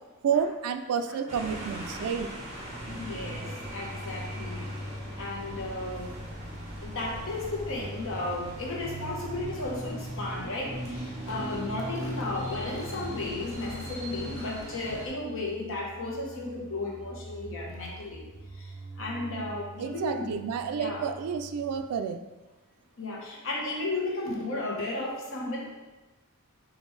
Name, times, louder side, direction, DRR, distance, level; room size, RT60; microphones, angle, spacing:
voice 1, 0.2-2.3 19.8-22.2, right 7 dB, 75° right, 8 dB, 0.3 m, -30 dB
sound 1, 1.3-15.1, equal, 30° right, 1.3 m, -40 dB
voice 2, 2.5-4.7 5.2-6.1 6.8-18.2 18.5-20.4 20.8-21.0 23.0-25.7, left 2 dB, 60° left, -1 dB, 1.0 m, -34 dB
sound 2, 2.6-21.8, right 1 dB, 35° left, 1.1 m, -44 dB
6.3 x 2.6 x 3.2 m, 1.1 s
head